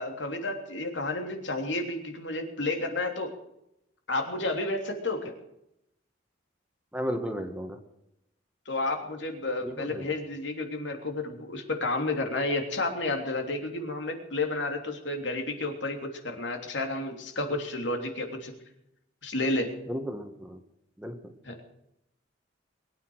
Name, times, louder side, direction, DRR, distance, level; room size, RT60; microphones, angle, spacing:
voice 1, 0.0-3.3 4.1-5.3 8.6-18.5 19.2-19.7 21.4-21.6, left 2 dB, 75° left, 4 dB, 3.2 m, -31 dB
voice 2, 6.9-7.8 9.6-10.1 19.9-20.6 21.0-21.3, equal, 5° right, 5 dB, 1.7 m, -34 dB
22.0 x 9.9 x 6.4 m, 0.81 s
head